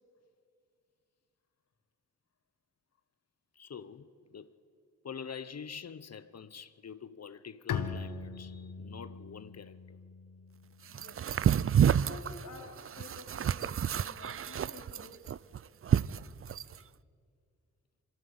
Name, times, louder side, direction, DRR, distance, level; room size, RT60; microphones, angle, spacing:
voice 1, 3.5-4.5 5.0-10.0, left 6 dB, 50° left, 0.8 m, -46 dB
Bowed string instrument, 7.7-11.2, left 6 dB, 90° left, 1.1 m, -40 dB
voice 2, 10.9-11.2 11.8-15.4, left 3 dB, 70° left, 4.1 m, -50 dB
sound 1, 10.9-16.8, right 9 dB, 45° right, 0.4 m, -29 dB
22.5 x 14.5 x 8.1 m
cardioid pair, 55°, 32 cm